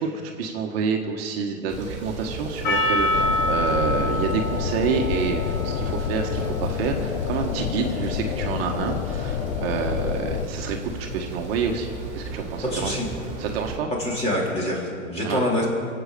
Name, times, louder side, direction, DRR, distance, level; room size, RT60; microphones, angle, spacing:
voice 1, 0.0-11.9 12.1-13.0 13.4-13.9 15.2-15.4, right 6 dB, 45° right, 2 dB, 1.5 m, -28 dB
sound 1, 1.7-13.8, right 2 dB, 15° right, 3.2 m, -35 dB
Percussion, 2.6-7.2, left 1 dB, 30° left, 2.5 m, -27 dB
sound 2, 3.1-10.5, left 10 dB, 55° left, 0.7 m, -29 dB
voice 2, 12.6-13.1 13.9-15.7, left 1 dB, 15° left, -3 dB, 3.9 m, -25 dB
22.0 x 8.2 x 6.8 m, 2.3 s
hypercardioid pair, 140°, 41 cm